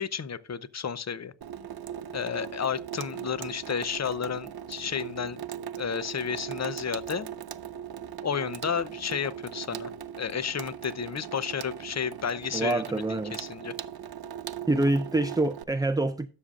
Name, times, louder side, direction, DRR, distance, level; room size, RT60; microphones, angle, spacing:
voice 1, 0.0-1.3 2.1-5.4 5.8-7.3 8.2-9.9 10.2-12.8 13.1-13.7, left 7 dB, 40° left, 0.7 m, -32 dB
Water tap faucet / Sink (filling or washing), 1.4-15.6, right 9 dB, 55° right, 0.6 m, -39 dB
voice 2, 12.5-13.3 14.7-16.3, right 2 dB, 10° right, 0.3 m, -26 dB
12.5 x 6.5 x 2.4 m
cardioid pair, 65°, 44 cm